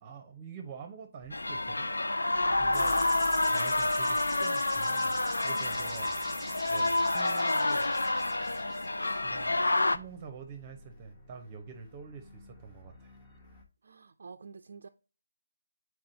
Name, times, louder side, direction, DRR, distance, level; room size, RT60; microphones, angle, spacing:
voice 1, 0.0-1.9 2.6-2.9 3.5-6.4 6.7-8.0 9.2-13.2, right 5 dB, 25° right, 0.7 m, -46 dB
sound 1, 1.2-13.6, left 1 dB, 20° left, 1.1 m, -53 dB
sound 2, 1.3-10.0, left 2 dB, 80° left, 0.5 m, -28 dB
voice 2, 2.6-3.0 13.8-14.9, right 4 dB, 55° right, 0.4 m, -46 dB
sound 3, 2.7-9.4, right 2 dB, ahead, 1.5 m, -45 dB
7.4 x 4.6 x 2.7 m
figure-of-eight pair, 155°, 0 cm